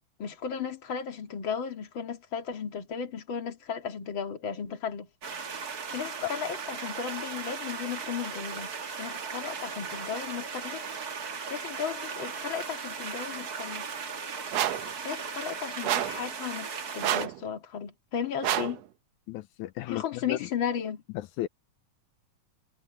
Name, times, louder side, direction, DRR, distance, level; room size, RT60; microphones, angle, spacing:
voice 1, 0.2-5.1 5.9-8.7 9.0-11.1 11.5-13.9 15.0-18.8 19.9-21.0, left 7 dB, 45° left, 2.6 m, -35 dB
sound 1, 5.2-17.3, right 5 dB, 40° right, 1.5 m, -37 dB
sound 2, 14.5-14.9 15.8-16.2 17.0-17.4 18.4-18.8, right 12 dB, 70° right, 1.9 m, -28 dB
voice 2, 19.3-20.5 21.1-21.5, left 15 dB, 85° left, 2.2 m, -34 dB
omnidirectional pair, 3.4 m